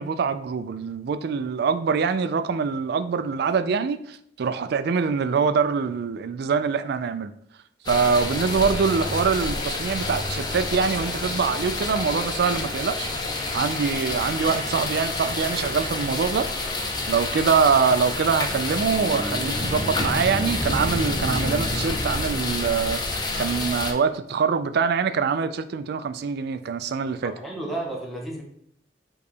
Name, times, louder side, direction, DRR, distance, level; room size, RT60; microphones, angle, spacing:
voice 1, 0.0-7.3 7.9-13.1 13.5-16.5 17.1-27.3, right 5 dB, 60° right, 0.3 m, -24 dB
sound 1, 7.9-23.9, left 2 dB, 25° left, 0.6 m, -28 dB
voice 2, 27.2-28.4, right 2 dB, ahead, 1.0 m, -32 dB
5.5 x 2.3 x 4.1 m
head